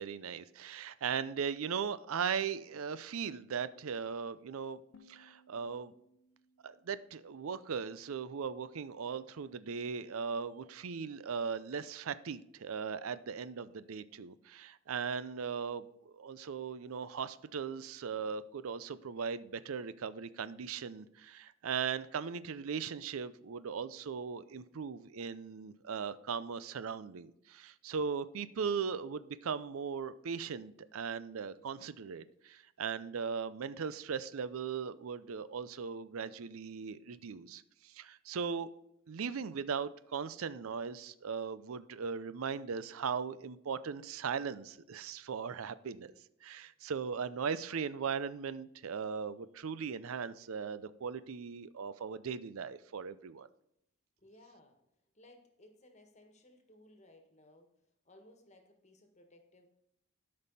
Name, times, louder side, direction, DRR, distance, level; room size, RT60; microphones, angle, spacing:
voice 1, 0.0-4.8 5.1-5.9 6.6-38.7 39.1-46.1 46.4-53.5, right 6 dB, 80° right, 15 dB, 0.5 m, -38 dB
sound 1, 4.9-7.9, left 2 dB, 80° left, 0.6 m, -65 dB
voice 2, 54.2-54.8 55.1-59.7, left 1 dB, 35° left, 5 dB, 1.5 m, -61 dB
12.5 x 5.4 x 4.1 m, 0.79 s
head